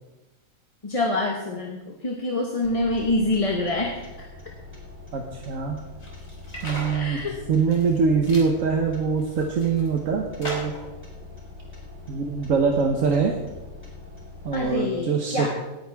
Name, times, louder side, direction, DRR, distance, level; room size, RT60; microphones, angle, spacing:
voice 1, 0.8-4.0 6.9-7.4 14.5-15.5, left 2 dB, 25° left, 0 dB, 1.2 m, -26 dB
sound 1, 2.6-14.6, left 3 dB, 10° right, 4.5 m, -43 dB
voice 2, 5.1-5.8 6.6-7.2 7.5-10.7 12.1-13.3 14.4-15.5, right 5 dB, 75° right, 2 dB, 1.4 m, -23 dB
sound 2, 6.0-7.1 7.6-8.0 8.3-8.5 9.1-9.9 10.4-10.9, equal, 55° left, 3.5 m, -36 dB
18.5 x 9.7 x 3.5 m, 1.1 s
omnidirectional pair, 1.4 m